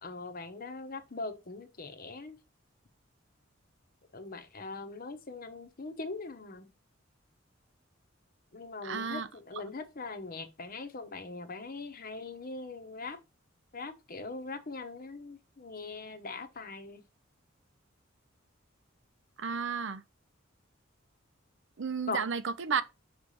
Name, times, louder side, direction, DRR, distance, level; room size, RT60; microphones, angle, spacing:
voice 1, 0.0-2.4 4.1-6.7 8.5-13.2 13.7-17.0 22.1-22.2, left 3 dB, 45° left, 1.0 m, -41 dB
voice 2, 8.8-9.3 9.5-9.6 19.4-20.0 21.8-22.8, right 6 dB, 65° right, 0.6 m, -32 dB
6.0 x 3.3 x 5.5 m
head